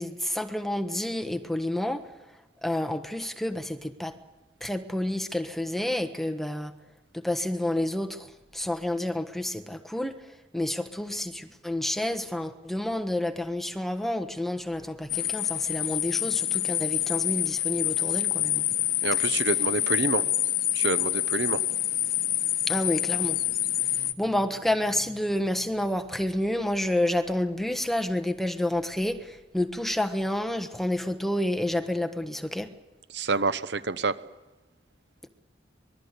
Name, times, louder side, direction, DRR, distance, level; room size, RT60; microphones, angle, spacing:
voice 1, 0.0-2.1 2.6-4.1 4.6-6.7 7.1-18.6 22.7-23.4 23.9-32.7, left 1 dB, ahead, 6 dB, 1.2 m, -29 dB
sound 1, 15.1-24.1, left 13 dB, 50° left, 1.1 m, -27 dB
voice 2, 19.0-20.2 20.7-21.6 33.1-34.2, right 3 dB, 60° right, 14 dB, 0.8 m, -27 dB
25.0 x 21.5 x 8.2 m, 1.1 s
head